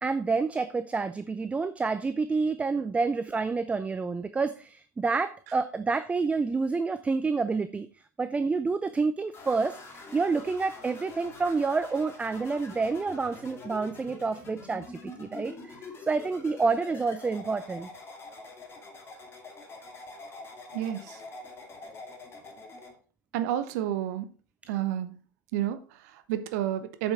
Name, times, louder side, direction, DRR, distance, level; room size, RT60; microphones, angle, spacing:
voice 1, 0.0-7.9 8.2-17.9 24.6-24.7, right 4 dB, 15° right, 12 dB, 0.5 m, -28 dB
sound 1, 9.3-22.9, left 3 dB, 25° left, 2.3 m, -45 dB
voice 2, 20.7-21.2 23.3-24.3 24.7-25.1 25.5-27.1, right 11 dB, 55° right, 11 dB, 0.9 m, -30 dB
8.3 x 7.2 x 4.3 m, 0.39 s
figure-of-eight pair, 85°, 10 cm